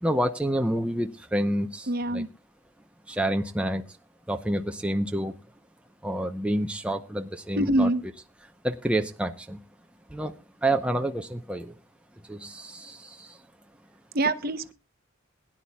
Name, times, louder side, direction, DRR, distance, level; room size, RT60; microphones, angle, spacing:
voice 1, 0.0-2.2 3.1-3.8 4.3-5.4 6.0-7.9 8.6-9.6 10.1-10.3 10.6-11.7 12.3-13.4, right 1 dB, 5° right, 0.7 m, -28 dB
voice 2, 1.9-2.3 7.5-8.0 14.1-14.7, right 1 dB, 50° right, 0.8 m, -24 dB
21.0 x 10.5 x 2.3 m
head